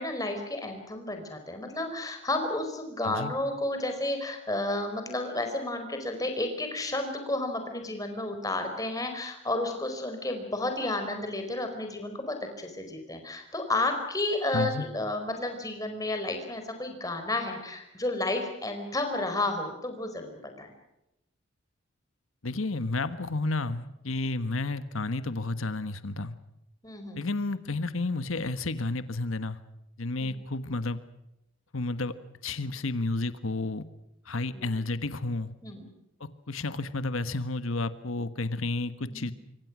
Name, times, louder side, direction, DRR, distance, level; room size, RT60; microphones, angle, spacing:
voice 1, 0.0-20.3 20.6-20.7 26.8-27.3 30.2-30.3 34.5-34.7 35.6-35.9 39.0-39.3, left 2 dB, 15° left, 5 dB, 4.7 m, -32 dB
voice 2, 3.0-3.3 14.5-14.9 22.4-26.3 27.2-29.6 30.0-31.0 31.7-32.1 32.4-33.8 34.2-35.5 36.2-39.3, left 2 dB, 80° left, 12 dB, 1.4 m, -31 dB
26.5 x 24.5 x 6.2 m, 0.88 s
head